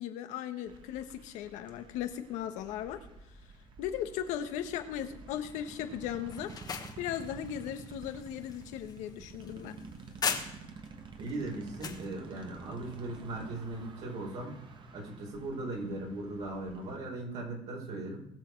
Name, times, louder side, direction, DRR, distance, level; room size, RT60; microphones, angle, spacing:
voice 1, 0.0-3.0 3.8-6.5 7.0-9.8, left 10 dB, 85° left, 8 dB, 1.2 m, -37 dB
sound 1, 0.7-17.0, right 4 dB, 40° right, 1.5 m, -50 dB
sound 2, 6.3-10.9 11.3-12.1, left 6 dB, 35° left, 1.3 m, -39 dB
voice 2, 11.2-14.5 14.9-18.3, right 2 dB, 70° right, -1 dB, 4.5 m, -38 dB
19.5 x 6.6 x 4.6 m, 0.86 s
cardioid pair, 105°, 12 cm